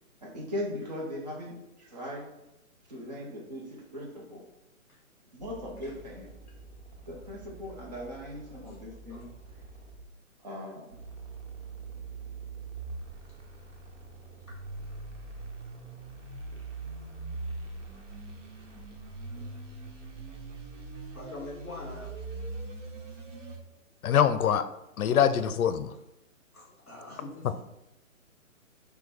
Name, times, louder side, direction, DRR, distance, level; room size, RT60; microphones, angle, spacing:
voice 1, 0.2-2.3 2.8-4.4 5.3-6.3 7.1-9.3 10.4-11.0, left 1 dB, 30° right, -3 dB, 0.7 m, -39 dB
sound 1, 5.4-10.0 10.9-23.6, right 3 dB, 60° right, 1.1 m, -43 dB
voice 2, 21.1-22.1 25.0-25.3 26.5-27.5, left 2 dB, 5° left, -6 dB, 1.5 m, -42 dB
voice 3, 24.0-24.7 25.0-25.9, left 8 dB, 80° left, 12 dB, 0.6 m, -24 dB
5.2 x 2.3 x 4.3 m, 0.90 s
hypercardioid pair, 175°, 42 cm